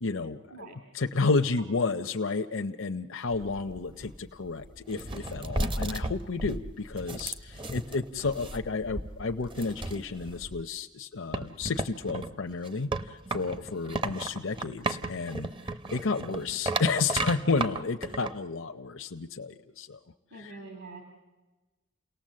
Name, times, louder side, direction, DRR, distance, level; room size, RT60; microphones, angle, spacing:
voice 1, 0.0-15.5 15.9-20.0 20.3-20.6, left 4 dB, 60° left, 6 dB, 0.7 m, -31 dB
sound 1, 3.3-10.6 11.3-18.4, right 2 dB, 25° right, 0.8 m, -35 dB
voice 2, 20.3-21.0, right 3 dB, 60° right, 3 dB, 2.7 m, -44 dB
29.5 x 18.5 x 7.6 m, 1.2 s
head